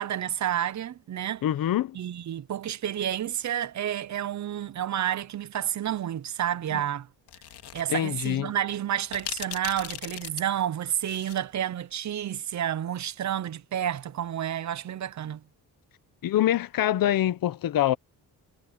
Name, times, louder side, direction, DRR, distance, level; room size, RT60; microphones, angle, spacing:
voice 1, 0.0-1.4 1.9-7.1 7.7-15.4, right 10 dB, 45° right, 0.7 m, -30 dB
voice 2, 1.4-2.0 6.7-6.8 7.9-8.5 16.2-18.0, left 12 dB, 60° left, 0.9 m, -25 dB
sound 1, 7.3-7.8 8.2-8.3 9.1-11.4, left 11 dB, 75° left, 2.3 m, -38 dB
cardioid pair, 155°, 40 cm